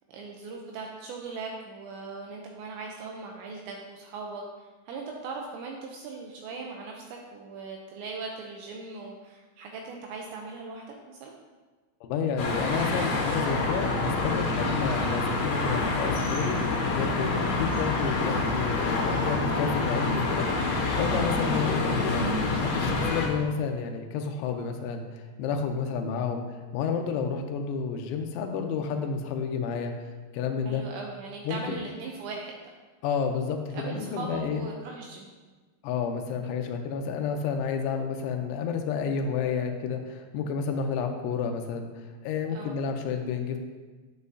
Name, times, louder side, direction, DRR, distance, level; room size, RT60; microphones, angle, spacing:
voice 1, 0.1-11.3 30.7-32.5 33.7-35.3 42.5-42.8, right 4 dB, 80° right, 0 dB, 2.8 m, -39 dB
voice 2, 12.0-20.7 21.0-30.8 31.5-31.8 33.0-34.7 35.8-43.6, left 6 dB, 80° left, 4 dB, 3.1 m, -30 dB
sound 1, 12.4-23.3, left 3 dB, 55° left, 3.0 m, -27 dB
9.7 x 8.5 x 2.7 m, 1.3 s
omnidirectional pair, 5.5 m